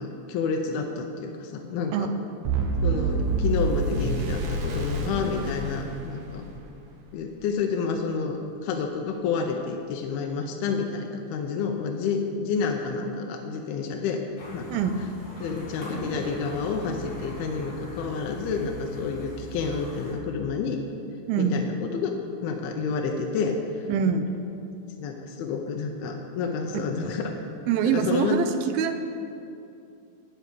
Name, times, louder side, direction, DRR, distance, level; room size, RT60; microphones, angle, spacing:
voice 1, 0.0-2.1 2.8-6.5 7.1-14.2 14.5-14.8 15.4-20.8 21.4-22.1 22.4-23.9 25.0-27.3 27.8-28.4, left 5 dB, 90° left, 2 dB, 2.7 m, -29 dB
sound 1, 2.4-6.6, right 3 dB, 70° right, 1.7 m, -27 dB
sound 2, 14.4-20.1, equal, 55° left, 4.2 m, -40 dB
voice 2, 21.3-21.6 23.9-24.3 26.7-26.8 27.7-28.5 28.7-29.0, right 7 dB, 85° right, 8 dB, 2.5 m, -24 dB
12.0 x 5.1 x 8.2 m, 2.6 s
omnidirectional pair, 4.3 m